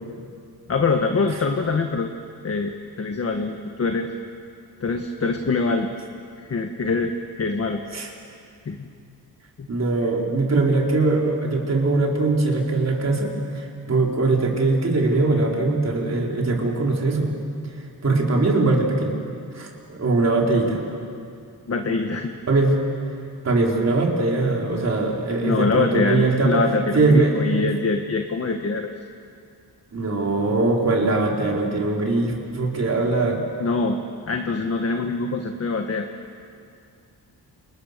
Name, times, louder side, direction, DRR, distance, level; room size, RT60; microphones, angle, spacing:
voice 1, 0.7-2.1 2.4-4.1 4.8-5.9 6.4-7.1 7.4-7.8 8.6-8.9 9.6-9.7 21.7-22.3 25.4-28.9 33.6-34.0 34.3-36.1, left 4 dB, 40° left, 4 dB, 1.5 m, -24 dB
voice 2, 9.7-17.3 18.0-19.1 19.5-20.8 22.5-22.8 23.4-26.6 26.9-27.3 29.9-33.4, right 3 dB, 40° right, -1 dB, 4.3 m, -21 dB
29.5 x 29.0 x 6.8 m, 2.4 s
wide cardioid pair, 135°, 39 cm